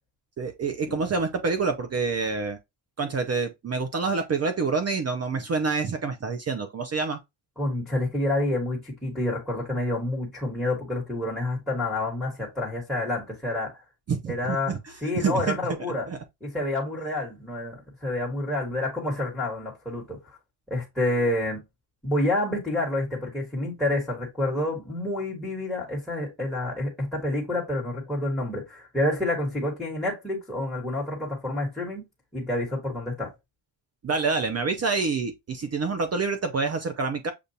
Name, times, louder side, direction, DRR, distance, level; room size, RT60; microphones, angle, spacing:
voice 1, 0.4-2.6 3.0-7.2 14.1-15.6 16.1-16.2 34.0-37.3, right 4 dB, 35° right, 0.5 m, -27 dB
voice 2, 7.6-13.8 14.3-14.7 15.0-16.1 16.4-20.4 20.7-21.6 22.0-32.0 32.3-33.3, left 1 dB, ahead, 1.4 m, -28 dB
6.7 x 2.4 x 2.7 m
cardioid pair, 150°, 46 cm